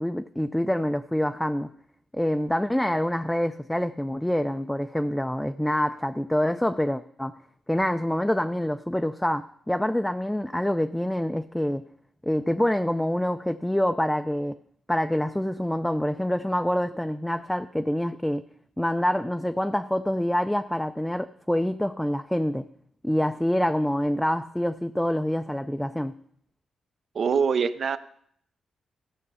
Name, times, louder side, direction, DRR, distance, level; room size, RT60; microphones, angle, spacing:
voice 1, 0.0-1.7 2.1-7.3 7.7-11.8 12.2-14.6 14.9-18.4 18.8-22.7 23.0-26.1, left 1 dB, 5° left, 8 dB, 0.4 m, -26 dB
voice 2, 27.1-28.0, right 6 dB, 55° right, 13 dB, 0.6 m, -24 dB
15.0 x 6.5 x 5.6 m, 0.67 s
cardioid pair, 105°, 0 cm